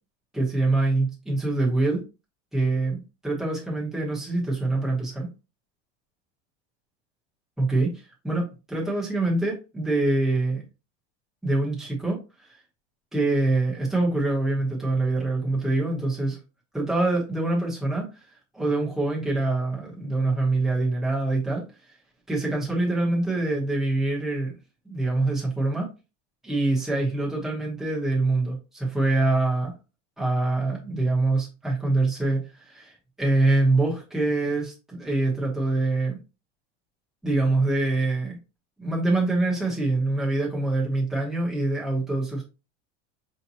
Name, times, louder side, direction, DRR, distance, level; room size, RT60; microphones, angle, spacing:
voice 1, 0.3-2.0 2.5-5.3 7.6-7.9 8.2-10.6 11.4-12.2 12.5-12.6 13.1-16.4 16.7-18.1 18.5-21.6 22.3-24.5 24.8-25.9 26.4-29.7 30.2-36.2 37.2-38.4 38.8-42.4, right 2 dB, ahead, -5 dB, 1.0 m, -25 dB
5.1 x 2.8 x 2.8 m, 0.29 s
supercardioid pair, 165°, 37 cm